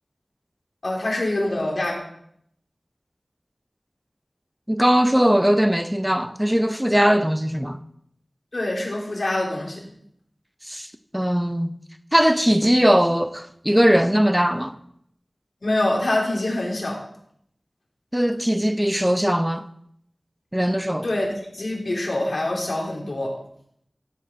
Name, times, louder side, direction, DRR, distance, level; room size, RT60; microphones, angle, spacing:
voice 1, 0.8-2.0 8.5-9.8 15.6-17.0 21.0-21.3 21.5-23.3, left 1 dB, 75° left, 3.6 m, -25 dB
voice 2, 4.7-7.8 10.7-10.9 11.1-11.7 12.1-14.7 18.1-19.6 20.5-21.1, equal, 10° right, 0.8 m, -20 dB
16.5 x 8.6 x 4.6 m
wide cardioid pair, 55°, 0 cm